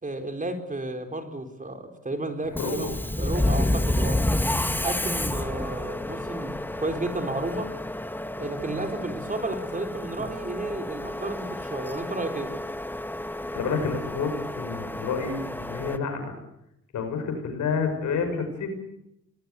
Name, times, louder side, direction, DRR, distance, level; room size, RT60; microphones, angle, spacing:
voice 1, 0.0-2.9 3.2-4.2 4.8-7.7 8.4-12.5, right 2 dB, 25° right, 6 dB, 4.1 m, -32 dB
Subway metro underground, 2.5-16.0, left 1 dB, 5° left, 1.4 m, -30 dB
voice 2, 2.6-2.9 13.3-16.3 16.9-18.7, left 5 dB, 80° left, 6 dB, 6.2 m, -29 dB
25.5 x 19.5 x 8.4 m, 0.83 s
cardioid pair, 75°, 29 cm